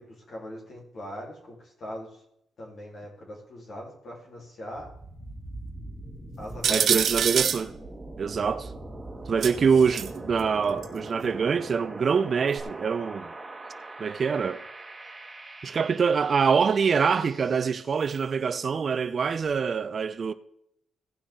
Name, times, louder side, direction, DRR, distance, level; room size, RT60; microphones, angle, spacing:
voice 1, 0.0-2.1 2.6-4.9 6.4-7.1, equal, 50° left, 3.9 m, -40 dB
sound 1, 4.7-18.5, right 2 dB, 5° right, 3.3 m, -42 dB
sound 2, 6.6-7.6 9.4-10.1 10.8-10.9 12.6-12.7, right 8 dB, 60° right, 0.9 m, -25 dB
voice 2, 6.7-7.7 8.2-8.7 9.3-13.3 14.0-14.6 15.6-20.3, right 6 dB, 45° right, 0.5 m, -25 dB
17.0 x 6.1 x 3.8 m
cardioid pair, 90°, 0 cm